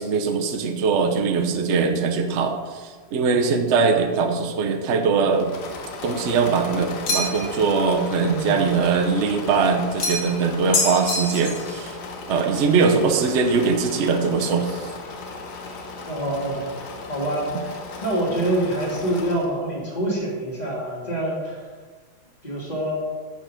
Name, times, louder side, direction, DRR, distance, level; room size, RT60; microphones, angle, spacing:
voice 1, 0.0-5.5 6.0-11.9 12.3-14.8, right 5 dB, 80° right, 4 dB, 0.6 m, -21 dB
Engine / Mechanisms, 5.3-19.6, left 3 dB, 65° left, 1.4 m, -36 dB
sound 1, 7.1-7.6 10.0-10.4 10.7-11.7, left 2 dB, 80° left, 2.2 m, -25 dB
voice 2, 8.2-8.6 16.1-16.7 17.1-17.5 18.0-21.6 22.4-22.9, right 1 dB, 20° left, -4 dB, 1.9 m, -26 dB
6.7 x 6.5 x 5.1 m, 1.5 s
omnidirectional pair, 2.1 m